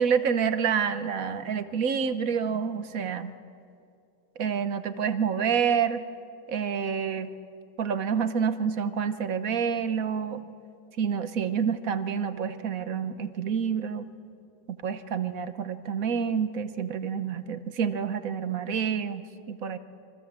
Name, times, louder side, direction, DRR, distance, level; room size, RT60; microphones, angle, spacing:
voice 1, 0.0-3.3 4.4-6.0 6.5-7.3 7.8-10.4 11.0-14.1 14.7-19.2 19.5-19.8, right 7 dB, 55° right, 11 dB, 1.3 m, -28 dB
27.0 x 24.5 x 7.4 m, 2.5 s
omnidirectional pair, 2.0 m